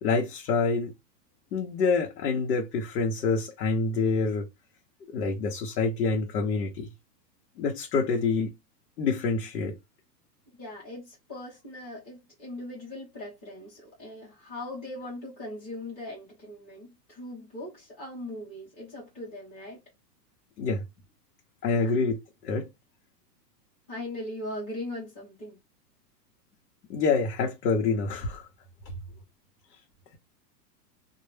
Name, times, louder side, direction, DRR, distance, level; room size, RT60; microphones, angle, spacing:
voice 1, 0.0-0.9 1.5-4.5 5.1-6.9 7.6-8.5 9.0-9.8 20.6-20.8 21.6-22.7 26.9-28.5, left 4 dB, 85° left, 0.8 m, -27 dB
voice 2, 10.6-19.8 21.7-21.9 23.9-25.6, left 1 dB, 15° left, 0.8 m, -40 dB
2.2 x 2.0 x 3.1 m
supercardioid pair, 175°, 49 cm